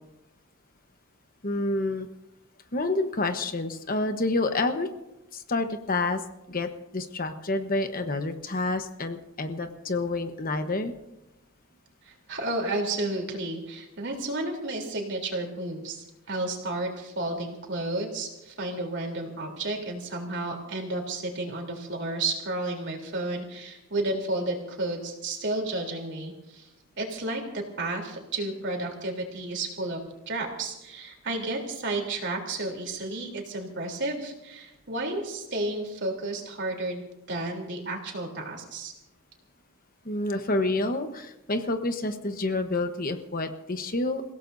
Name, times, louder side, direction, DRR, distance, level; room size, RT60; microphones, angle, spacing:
voice 1, 1.4-2.1 2.7-4.9 5.3-6.2 6.5-10.9 40.0-44.2, left 2 dB, 40° left, 7 dB, 1.1 m, -28 dB
voice 2, 12.1-26.7 27.0-30.0 30.3-37.0 37.3-38.9, right 2 dB, 55° right, 1 dB, 3.5 m, -32 dB
28.5 x 17.0 x 2.7 m, 0.94 s
head